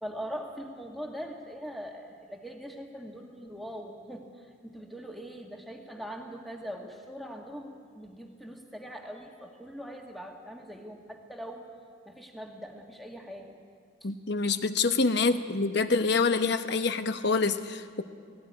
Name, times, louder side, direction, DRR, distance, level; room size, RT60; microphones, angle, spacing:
voice 1, 0.0-11.7 12.1-13.6 14.0-14.1 15.1-15.4, equal, ahead, 1 dB, 1.9 m, -42 dB
voice 2, 14.0-18.0, left 4 dB, 55° left, 9 dB, 1.0 m, -26 dB
18.0 x 17.5 x 9.9 m, 2.1 s
head